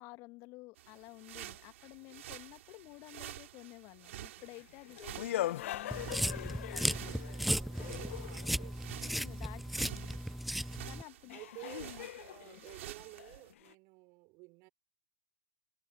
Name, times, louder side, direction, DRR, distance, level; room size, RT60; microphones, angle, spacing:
voice 1, 0.0-7.0 7.6-7.7 9.0-10.2 10.8-11.7 12.5-12.6, left 23 dB, 35° left, 1.7 m, -52 dB
sound 1, 0.8-13.5, right 13 dB, 55° right, 6.4 m, -50 dB
sound 2, 4.5-8.8 10.6-10.7 11.3-13.7, left 13 dB, 55° left, 1.4 m, -41 dB
sound 3, 5.9-11.0, equal, ahead, 0.3 m, -36 dB
voice 2, 6.9-9.1 11.3-14.7, right 26 dB, 35° right, 5.1 m, -53 dB
figure-of-eight pair, 115°, 9 cm